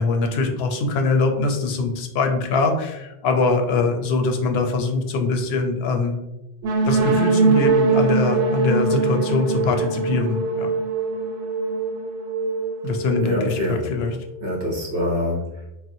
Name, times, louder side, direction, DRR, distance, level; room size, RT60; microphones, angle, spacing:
voice 1, 0.0-6.2 6.8-10.7 12.8-14.1, left 3 dB, 75° left, 4 dB, 0.8 m, -22 dB
sound 1, 6.6-14.3, right 4 dB, 90° right, 0.8 m, -22 dB
voice 2, 13.2-13.9 14.4-15.7, left 1 dB, 60° right, -2 dB, 0.9 m, -25 dB
4.1 x 2.1 x 2.6 m, 0.95 s
omnidirectional pair, 1.1 m